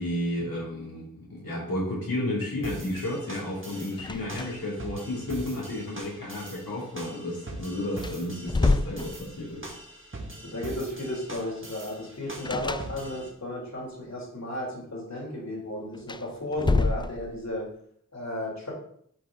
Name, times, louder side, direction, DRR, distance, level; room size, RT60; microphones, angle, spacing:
voice 1, 0.0-9.7, left 1 dB, 85° left, -6 dB, 2.7 m, -32 dB
sound 1, 2.6-13.3, right 2 dB, 35° right, 1.9 m, -42 dB
sound 2, 4.0-4.8 5.1-5.2 7.4-7.5 7.9-9.7 12.4-13.4 15.9-17.6, left 3 dB, 15° left, 0.3 m, -28 dB
voice 2, 10.4-17.7 18.1-18.7, left 1 dB, 55° left, -3 dB, 2.9 m, -34 dB
8.9 x 4.8 x 3.8 m, 0.65 s
wide cardioid pair, 50°, 34 cm